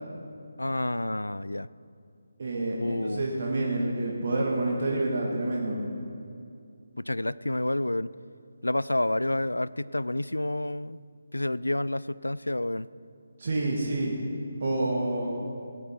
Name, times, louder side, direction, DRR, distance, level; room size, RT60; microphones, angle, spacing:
voice 1, 0.6-1.7 2.8-3.3 7.0-8.1 8.6-11.0 11.3-12.9, left 1 dB, 90° left, 19 dB, 0.3 m, -29 dB
voice 2, 2.4-5.8 13.4-14.1 14.6-15.3, right 2 dB, 50° right, -2 dB, 1.8 m, -28 dB
17.0 x 9.8 x 4.4 m, 2.4 s
figure-of-eight pair, 155°, 0 cm